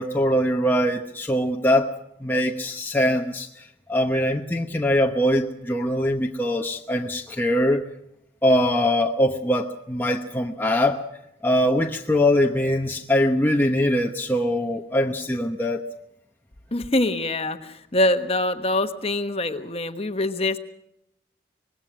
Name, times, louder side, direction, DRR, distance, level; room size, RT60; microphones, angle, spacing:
voice 1, 0.0-1.9 2.2-7.9 8.4-11.0 11.4-15.8, left 1 dB, 10° left, 2 dB, 1.0 m, -22 dB
voice 2, 16.7-20.6, left 1 dB, 30° left, 8 dB, 1.3 m, -24 dB
24.5 x 20.5 x 6.1 m, 0.79 s
head